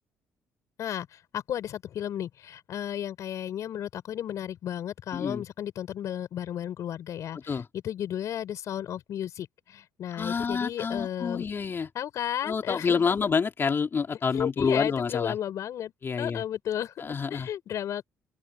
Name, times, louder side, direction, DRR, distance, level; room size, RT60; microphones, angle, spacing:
voice 1, 0.8-11.5 11.9-13.0 14.3-16.9 17.3-18.1, left 10 dB, 60° left, 5.2 m, -33 dB
voice 2, 5.1-5.4 7.3-7.7 10.1-11.9 12.4-15.4 16.0-16.4 17.0-17.5, left 5 dB, 40° left, 3.1 m, -28 dB
open air
supercardioid pair, 65°, 6 cm